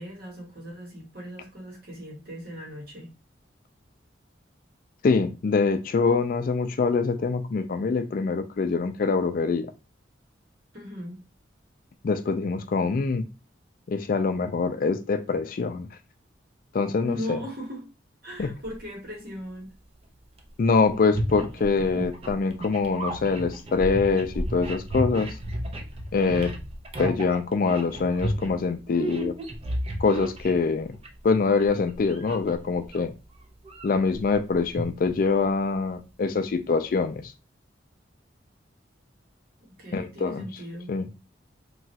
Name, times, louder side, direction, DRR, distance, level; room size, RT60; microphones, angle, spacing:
voice 1, 0.0-3.1 10.7-11.2 17.0-17.9 18.2-19.7 39.8-40.9, equal, 55° right, 1 dB, 1.0 m, -38 dB
voice 2, 5.0-9.7 12.0-13.2 13.9-15.9 16.7-17.4 18.4-18.5 20.6-25.4 26.1-26.5 27.0-29.3 30.0-30.9 31.2-33.1 33.8-37.2 39.9-40.5 40.9-41.1, left 4 dB, 50° left, 8 dB, 0.3 m, -24 dB
sound 1, 18.4-18.8 20.4-20.5 20.8-31.2 31.6-33.0 33.4-35.4, right 1 dB, 30° right, 0.4 m, -33 dB
3.0 x 2.2 x 2.8 m, 0.30 s
head